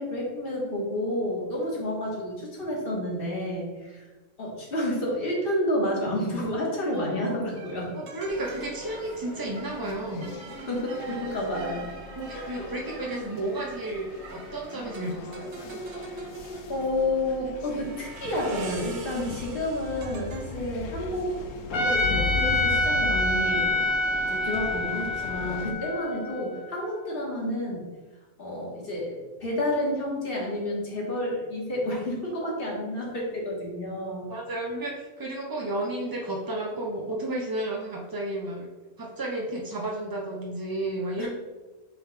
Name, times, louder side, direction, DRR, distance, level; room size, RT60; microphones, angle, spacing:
voice 1, 0.0-4.0 4.4-7.9 10.7-11.8 12.3-12.5 16.7-21.3 21.7-23.7 24.1-27.8 28.4-34.3 41.2-41.3, left 1 dB, 45° left, -3 dB, 1.7 m, -30 dB
sound 1, 7.6-24.3, right 4 dB, 60° right, 1.0 m, -44 dB
voice 2, 8.0-10.4 12.1-15.5 31.9-32.0 34.3-38.7 39.0-41.3, right 1 dB, 30° right, -2 dB, 0.4 m, -32 dB
sound 2, 8.2-25.7, left 4 dB, 75° left, 1.0 m, -38 dB
Trumpet, 21.7-26.9, left 2 dB, 25° left, 0.8 m, -27 dB
8.2 x 3.6 x 3.3 m, 1.2 s
omnidirectional pair, 1.4 m